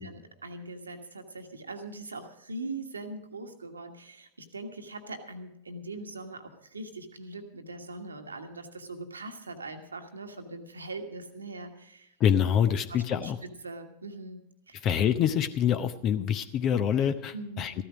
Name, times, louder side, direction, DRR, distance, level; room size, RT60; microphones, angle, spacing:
voice 1, 0.0-12.1 12.9-14.9 17.3-17.7, right 2 dB, 75° right, 6 dB, 1.4 m, -41 dB
voice 2, 12.2-13.4 14.8-17.7, left 9 dB, 35° left, 12 dB, 0.7 m, -26 dB
14.5 x 13.0 x 4.9 m, 0.76 s
figure-of-eight pair, 90°, 0 cm